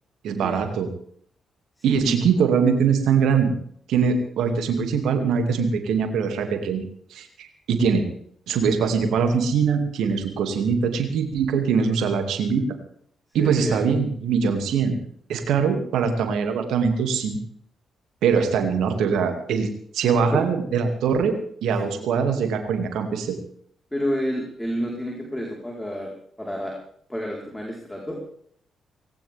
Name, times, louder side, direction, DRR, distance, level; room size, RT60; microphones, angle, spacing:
voice 1, 0.2-0.9 1.8-3.5 3.9-6.8 7.1-8.1 8.5-12.7 13.3-15.0 15.3-17.4 18.2-19.7 19.9-21.3 21.6-23.4, right 6 dB, 70° right, 6 dB, 2.5 m, -22 dB
voice 2, 1.9-2.2 13.4-13.8 20.3-20.4 21.8-22.0 23.9-26.1 26.4-26.8 27.1-28.2, equal, 10° left, -1 dB, 4.5 m, -29 dB
19.5 x 17.5 x 3.7 m, 0.62 s
hypercardioid pair, 40°, 0 cm